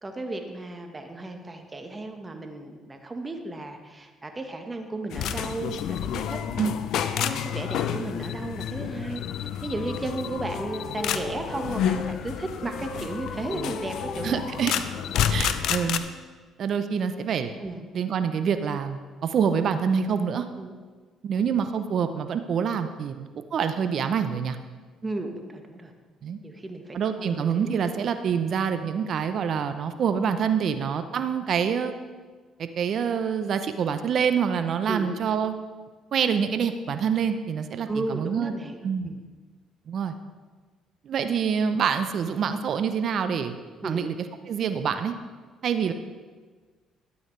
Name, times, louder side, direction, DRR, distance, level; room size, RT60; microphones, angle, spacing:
voice 1, 0.0-6.4 7.1-14.5 17.6-17.9 20.6-20.7 21.3-21.4 25.0-25.9 26.4-27.8 34.9-35.1 37.9-38.8 39.0-39.2 43.8-44.0, right 2 dB, 25° right, 4 dB, 1.3 m, -34 dB
sound 1, 5.1-16.0, left 9 dB, 70° left, 0.5 m, -30 dB
Wind instrument woodwind instrument, 8.8-12.1 12.5-16.4, left 1 dB, 40° left, 1.1 m, -42 dB
voice 2, 14.2-14.7 15.3-16.0 16.6-17.5 17.9-20.5 21.2-24.6 26.2-26.4 26.9-31.9 32.6-35.5 36.1-38.5 38.8-39.1 39.9-40.1 41.0-43.6 43.8-44.1 44.5-45.1 45.6-45.9, right 7 dB, 60° right, 9 dB, 0.6 m, -26 dB
12.5 x 8.7 x 3.2 m, 1.4 s
supercardioid pair, 65°, 0 cm